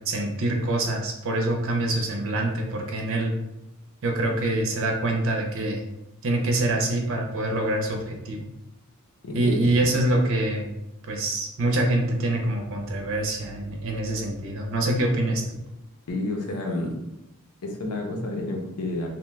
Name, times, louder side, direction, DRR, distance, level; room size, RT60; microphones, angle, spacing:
voice 1, 0.1-3.3 4.0-5.8 6.2-8.5 9.3-10.7 11.1-15.4, right 1 dB, 65° right, 2 dB, 0.6 m, -25 dB
voice 2, 9.2-9.7 16.1-16.9 17.6-19.1, left 2 dB, 80° left, 1 dB, 0.6 m, -30 dB
2.9 x 2.1 x 3.2 m, 0.91 s
head